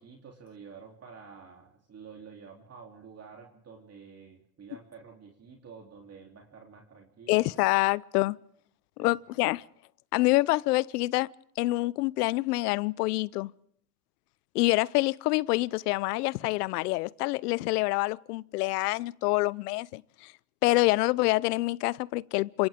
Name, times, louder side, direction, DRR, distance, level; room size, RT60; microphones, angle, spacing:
voice 1, 0.0-7.5 9.0-9.1, right 6 dB, 30° right, 3.2 m, -49 dB
voice 2, 7.3-8.4 9.0-9.6 10.1-11.3 11.6-13.5 14.5-20.3 20.6-22.7, left 20 dB, 75° left, 0.7 m, -26 dB
29.0 x 25.5 x 3.6 m
hypercardioid pair, 95°, 47 cm